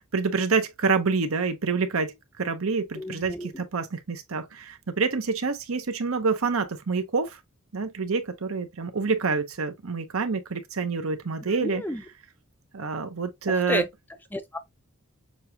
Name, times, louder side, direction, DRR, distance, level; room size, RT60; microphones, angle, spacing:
voice 1, 0.0-7.4 7.7-11.8 12.7-13.8, right 4 dB, 80° right, 0.8 m, -27 dB
voice 2, 3.0-3.6 11.6-12.0 13.7-13.9 14.3-14.6, left 1 dB, 10° left, 0.5 m, -30 dB
6.5 x 2.3 x 2.8 m
head